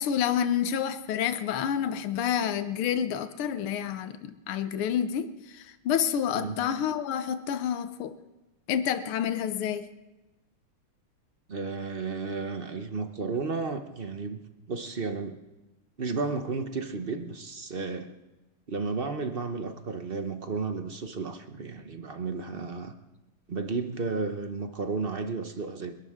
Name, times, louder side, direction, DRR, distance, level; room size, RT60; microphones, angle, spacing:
voice 1, 0.0-8.2 8.7-9.9, left 9 dB, 80° left, 10 dB, 1.8 m, -29 dB
voice 2, 11.5-14.4 14.7-15.4 16.0-18.2 18.7-22.9 23.5-25.9, right 4 dB, 50° right, 7 dB, 0.6 m, -33 dB
29.0 x 12.0 x 3.6 m, 1.1 s
omnidirectional pair, 2.4 m